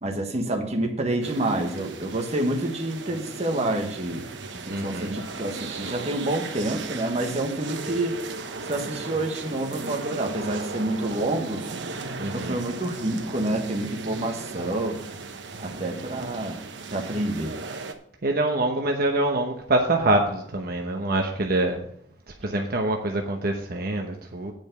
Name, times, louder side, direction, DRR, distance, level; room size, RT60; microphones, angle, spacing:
voice 1, 0.0-8.2 8.6-11.7 12.2-15.0 15.6-16.6 16.9-17.6, right 1 dB, 40° right, 3 dB, 1.4 m, -28 dB
sound 1, 1.2-17.9, right 3 dB, 85° right, 1.0 m, -37 dB
voice 2, 4.7-5.2 12.2-12.6 18.2-21.8 22.4-24.5, right 2 dB, 60° right, 2 dB, 1.0 m, -25 dB
9.0 x 5.2 x 7.8 m, 0.71 s
head